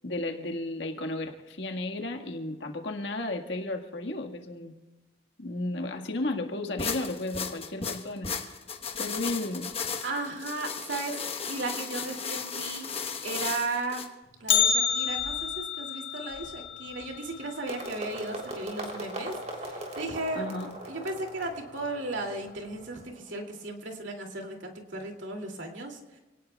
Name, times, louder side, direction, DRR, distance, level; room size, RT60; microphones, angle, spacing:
voice 1, 0.0-4.7 5.4-8.3 9.0-9.7 20.3-20.7, left 2 dB, 70° left, 3 dB, 1.7 m, -33 dB
sound 1, 6.8-14.1, left 6 dB, 30° left, 1.1 m, -35 dB
voice 2, 10.0-11.2 11.5-12.9 13.2-14.0 14.4-20.5 20.8-26.2, right 2 dB, 75° right, 2 dB, 2.6 m, -35 dB
Bell, 14.5-18.6 18.9-19.0 19.4-19.5 20.3-20.4 21.2-21.5 21.8-21.9, left 8 dB, 90° left, 1.6 m, -29 dB
sound 2, 17.7-23.6, right 1 dB, 35° right, 3.4 m, -40 dB
27.5 x 18.5 x 2.3 m, 1.2 s
head